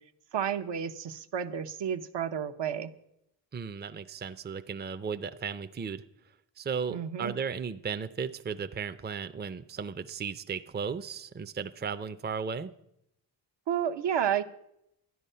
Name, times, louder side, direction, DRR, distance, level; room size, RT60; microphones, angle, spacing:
voice 1, 0.3-2.9 6.9-7.3 13.7-14.4, right 9 dB, 70° right, 8 dB, 0.9 m, -31 dB
voice 2, 3.5-6.0 6.6-12.7, right 6 dB, 25° right, 11 dB, 0.5 m, -35 dB
12.5 x 10.0 x 5.5 m, 0.80 s
cardioid pair, 85°, 44 cm